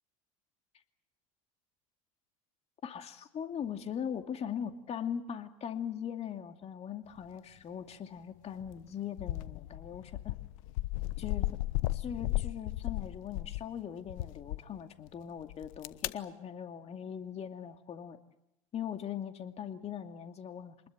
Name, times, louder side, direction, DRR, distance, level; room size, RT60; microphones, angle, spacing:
voice 1, 2.8-10.4 11.2-11.5 11.9-18.2 18.7-20.9, left 8 dB, 35° left, 6 dB, 2.5 m, -40 dB
sound 1, 8.6-8.8 9.2-13.7 14.1-14.6 15.5-16.1, left 17 dB, 70° left, 1.1 m, -35 dB
26.5 x 21.0 x 7.6 m, 0.83 s
hypercardioid pair, 90°, 17 cm